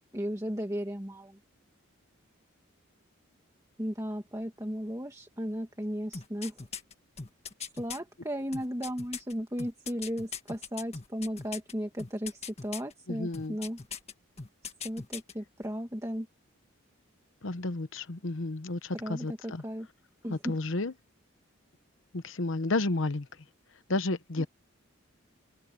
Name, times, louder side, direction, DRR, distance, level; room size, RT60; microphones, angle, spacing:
voice 1, 0.1-1.4 3.8-6.6 7.7-13.8 14.8-16.3 18.9-19.9 20.2-20.6 24.4-24.5, equal, 15° right, 2.0 m, -35 dB
sound 1, 6.1-8.0 8.5-11.7 12.0-12.9 13.3-14.1 14.4-15.3 15.6-15.7, left 6 dB, 30° left, 1.7 m, -40 dB
voice 2, 13.1-13.6 17.4-19.6 20.3-20.9 22.1-23.3 23.9-24.5, left 2 dB, 70° left, 1.0 m, -31 dB
head